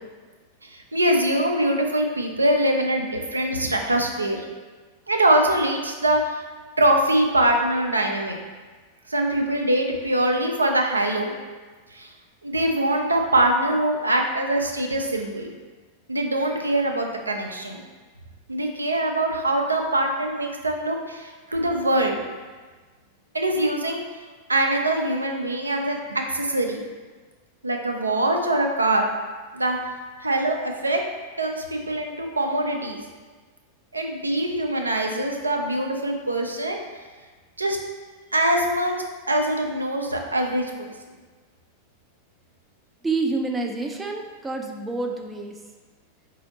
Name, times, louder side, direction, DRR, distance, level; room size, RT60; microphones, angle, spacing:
voice 1, 0.6-4.4 5.1-6.4 6.8-8.4 9.1-11.3 11.9-12.1 12.4-15.5 16.1-17.8 18.5-22.2 23.3-24.0 24.5-26.8 27.6-29.1 29.5-29.8 30.2-31.0 31.4-33.0 33.9-36.8 37.6-37.8 38.3-39.0 39.3-40.9, right 1 dB, 80° right, 2 dB, 0.4 m, -23 dB
voice 2, 43.0-45.6, right 3 dB, 10° right, 2 dB, 0.4 m, -28 dB
4.1 x 2.7 x 4.0 m, 1.4 s
figure-of-eight pair, 90°, 0 cm